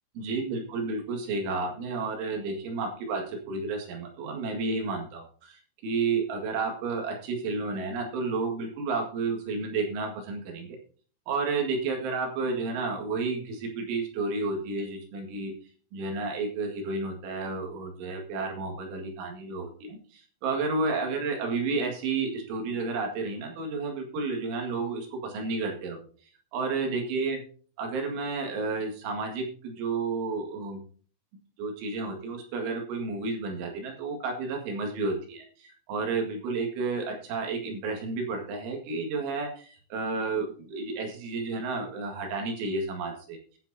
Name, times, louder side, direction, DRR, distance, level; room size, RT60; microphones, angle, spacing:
voice 1, 0.2-10.8 11.3-15.5 15.9-26.0 26.5-27.4 27.8-30.8 31.6-43.4, right 3 dB, 70° right, 2 dB, 4.3 m, -31 dB
20.5 x 7.5 x 2.7 m, 0.43 s
omnidirectional pair, 5.9 m